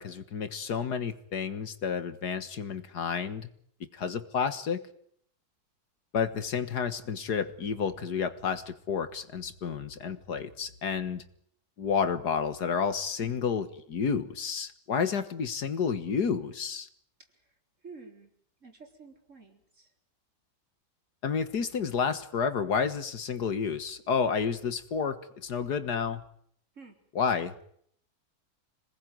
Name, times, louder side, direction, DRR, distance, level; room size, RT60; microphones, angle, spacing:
voice 1, 0.0-3.5 3.9-4.8 6.1-11.2 11.8-16.9 21.2-26.2 27.2-27.6, left 6 dB, 70° left, 11 dB, 2.1 m, -30 dB
voice 2, 13.2-13.6 17.8-18.3 18.6-19.9 26.8-26.9, right 4 dB, 45° right, 3 dB, 4.3 m, -50 dB
26.5 x 20.0 x 9.3 m, 0.66 s
omnidirectional pair, 1.8 m